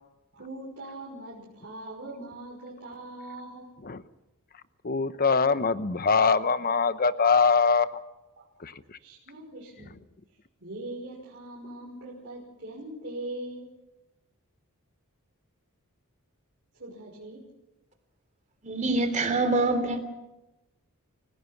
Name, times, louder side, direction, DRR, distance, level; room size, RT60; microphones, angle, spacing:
voice 1, 0.3-3.7 8.4-8.6 9.0-10.0 10.6-13.7 16.8-17.4, right 1 dB, 55° right, -5 dB, 6.0 m, -41 dB
voice 2, 4.8-7.9 8.6-9.0, left 5 dB, 40° left, 13 dB, 0.9 m, -23 dB
voice 3, 18.6-20.0, right 2 dB, 35° right, 7 dB, 3.3 m, -25 dB
30.0 x 17.5 x 6.0 m, 0.97 s
head